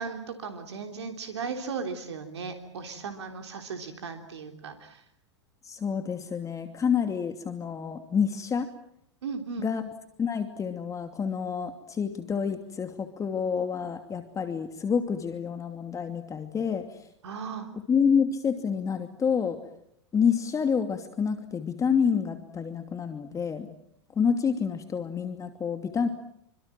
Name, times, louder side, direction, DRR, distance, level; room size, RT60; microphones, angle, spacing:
voice 1, 0.0-5.0 9.2-9.7 17.2-17.7, right 5 dB, 75° right, 5 dB, 3.4 m, -36 dB
voice 2, 5.6-8.7 9.6-9.9 10.2-17.0 17.9-19.6 20.1-23.7 24.1-26.1, left 6 dB, 20° left, 7 dB, 2.7 m, -28 dB
27.5 x 25.5 x 7.6 m, 0.74 s
hypercardioid pair, 100°, 14 cm